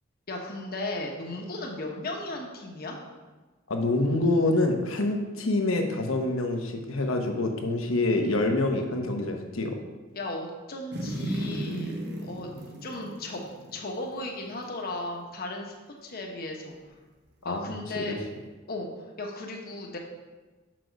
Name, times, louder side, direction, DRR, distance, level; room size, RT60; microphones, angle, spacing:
voice 1, 0.3-3.0 10.1-12.5 12.8-13.4 13.7-15.7 16.0-16.8 17.4-18.2 18.7-18.9 19.2-20.0, left 2 dB, 50° left, 1 dB, 1.1 m, -35 dB
voice 2, 3.7-9.8 17.4-18.1, left 2 dB, 85° left, 3 dB, 1.1 m, -26 dB
sound 1, 10.9-14.3 14.6-14.7, right 1 dB, 55° right, 1.1 m, -35 dB
6.5 x 6.1 x 4.6 m, 1.2 s
head